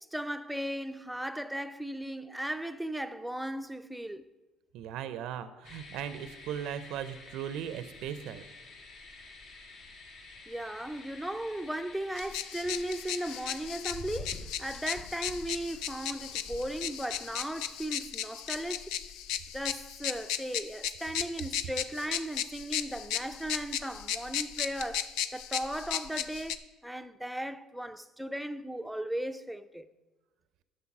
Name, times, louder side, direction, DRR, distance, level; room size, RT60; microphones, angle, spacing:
voice 1, 0.1-4.3 10.5-19.0 19.5-29.9, right 1 dB, ahead, 0.5 m, -37 dB
voice 2, 4.7-8.5, right 9 dB, 70° right, 0.6 m, -38 dB
sound 1, 5.6-17.9, left 3 dB, 65° left, 2.6 m, -49 dB
sound 2, 12.2-26.6, left 10 dB, 80° left, 0.5 m, -36 dB
11.0 x 6.6 x 6.0 m
cardioid pair, 110°, 0 cm